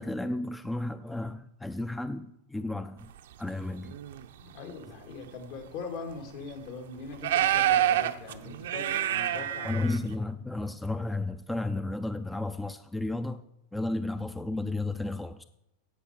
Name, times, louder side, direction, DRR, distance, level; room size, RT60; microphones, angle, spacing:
voice 1, 0.0-3.1 3.4-4.0 9.6-13.4 13.7-15.4, left 2 dB, 5° left, 0.4 m, -33 dB
sound 1, 3.6-4.3 5.1-5.2 5.7-5.8 6.4-6.5 7.1-10.1, right 12 dB, 80° right, 0.7 m, -27 dB
voice 2, 4.4-10.1, left 4 dB, 65° left, 2.4 m, -41 dB
15.5 x 5.6 x 4.4 m
supercardioid pair, 125°, 0 cm